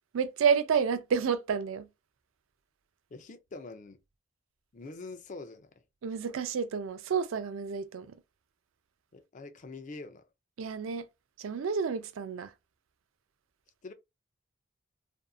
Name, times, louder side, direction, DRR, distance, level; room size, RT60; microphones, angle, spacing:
voice 1, 0.1-1.9 6.0-8.1 10.6-11.1 11.4-12.5, right 6 dB, 80° right, 0.4 m, -30 dB
voice 2, 3.1-4.0 4.7-5.8 9.1-10.3 13.8-13.9, left 3 dB, 40° left, 0.4 m, -44 dB
2.6 x 2.4 x 2.3 m
head